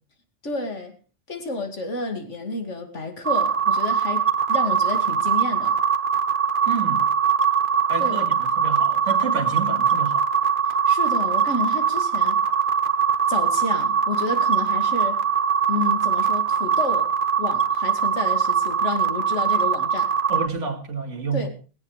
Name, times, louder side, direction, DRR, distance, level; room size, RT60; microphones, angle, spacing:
voice 1, 0.4-0.9 1.3-5.8 8.0-8.3 10.6-12.4 13.3-15.2 15.7-17.1 17.4-20.1 21.3-21.5, left 3 dB, 75° left, 2.7 m, -30 dB
sound 1, 3.2-20.5, right 7 dB, 45° right, 1.2 m, -22 dB
voice 2, 6.7-7.0 7.9-10.2 20.3-21.5, right 5 dB, 85° right, 2.3 m, -29 dB
17.5 x 17.0 x 3.3 m
omnidirectional pair, 1.2 m